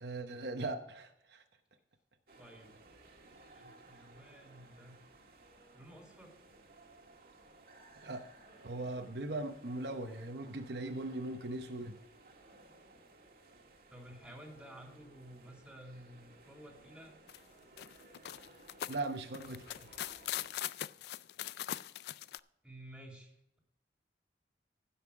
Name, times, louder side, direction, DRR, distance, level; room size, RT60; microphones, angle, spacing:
voice 1, 0.0-1.4 3.6-3.7 8.0-8.2 8.6-12.0 18.9-19.6, right 2 dB, 70° right, 6 dB, 0.9 m, -39 dB
sound 1, 2.3-20.5, right 2 dB, 55° right, 1.6 m, -59 dB
voice 2, 2.4-2.7 3.5-5.0 5.7-6.3 13.9-17.1 22.6-23.6, right 1 dB, 5° right, 1 dB, 2.3 m, -53 dB
A walk in the woods, 17.3-17.4 17.8-22.4, left 12 dB, 65° left, 0.3 m, -41 dB
16.0 x 5.7 x 4.8 m, 0.76 s
head